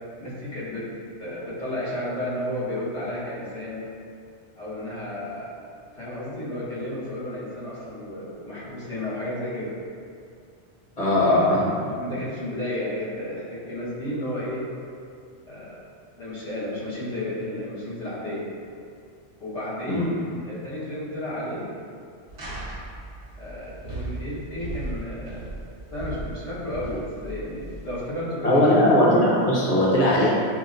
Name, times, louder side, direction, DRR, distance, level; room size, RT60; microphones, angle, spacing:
voice 1, 0.2-0.8 1.2-3.9 4.6-5.5 6.0-9.7 11.2-11.4 11.8-14.6 15.5-15.8 16.2-18.4 19.4-21.7 23.4-25.5 25.9-28.9, left 1 dB, 85° left, -10 dB, 1.5 m, -32 dB
voice 2, 11.0-11.7 19.9-20.1 28.4-30.3, left 1 dB, 40° left, -7 dB, 0.7 m, -19 dB
sound 1, 22.3-28.1, right 1 dB, 55° right, 1.0 m, -37 dB
5.6 x 2.1 x 2.5 m, 2.3 s
omnidirectional pair, 1.2 m